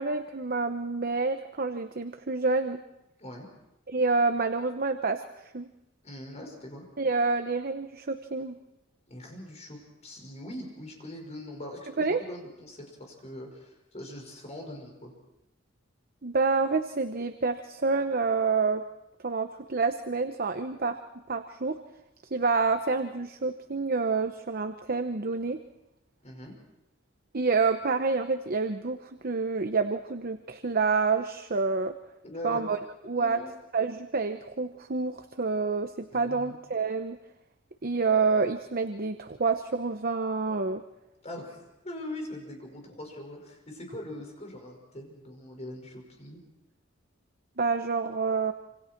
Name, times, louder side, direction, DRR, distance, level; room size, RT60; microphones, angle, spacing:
voice 1, 0.0-2.8 3.9-5.2 5.5-5.7 7.0-8.6 12.0-12.2 16.2-18.8 19.2-21.0 21.3-21.8 22.3-25.6 27.3-29.0 29.2-32.0 32.4-32.8 33.0-33.4 33.7-37.2 37.8-40.8 47.6-48.5, right 4 dB, 50° right, 8 dB, 0.9 m, -28 dB
voice 2, 6.0-6.8 9.1-15.1 26.2-26.5 32.2-32.6 33.1-33.5 36.1-36.6 41.2-41.6 41.8-46.4, left 1 dB, 35° left, 2 dB, 5.6 m, -42 dB
27.0 x 26.5 x 4.6 m, 0.90 s
head